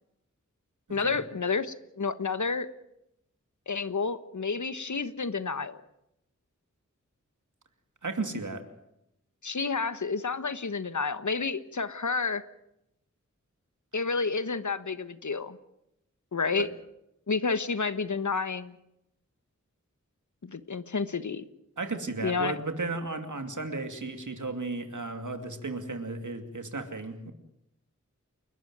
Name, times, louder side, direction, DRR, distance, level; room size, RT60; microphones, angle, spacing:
voice 1, 0.9-2.7 3.7-5.8 9.4-12.4 13.9-15.6 16.3-16.7 17.3-18.8 20.4-21.4 22.2-22.6, left 4 dB, 75° left, 13 dB, 1.3 m, -30 dB
voice 2, 8.0-8.6 16.6-16.7 21.8-27.3, right 3 dB, 80° right, 7 dB, 2.6 m, -34 dB
29.5 x 12.5 x 9.3 m, 0.82 s
wide cardioid pair, 65°, 30 cm